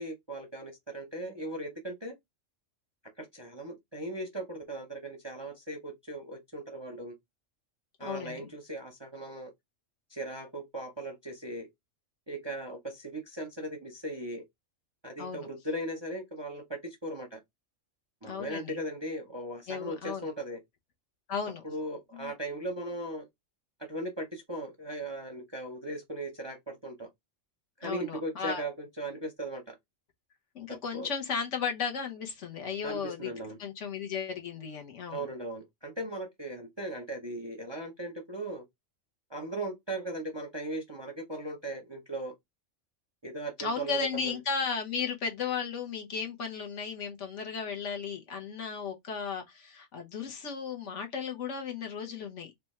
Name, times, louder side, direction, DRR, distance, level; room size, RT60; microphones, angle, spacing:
voice 1, 0.0-2.1 3.2-7.1 8.0-9.5 10.1-11.7 12.3-14.4 15.0-17.4 18.2-20.6 21.6-23.3 23.8-27.1 27.8-29.8 30.7-31.1 32.8-33.6 35.1-38.6 39.3-42.3 43.2-44.4, right 1 dB, 35° right, 0.5 m, -38 dB
voice 2, 8.0-8.5 15.2-15.5 18.2-18.8 19.7-20.3 21.3-21.6 22.1-22.3 27.8-28.7 30.5-33.3 33.6-35.3 43.6-52.6, left 6 dB, 70° left, 1.2 m, -35 dB
3.3 x 2.3 x 4.1 m
omnidirectional pair, 1.3 m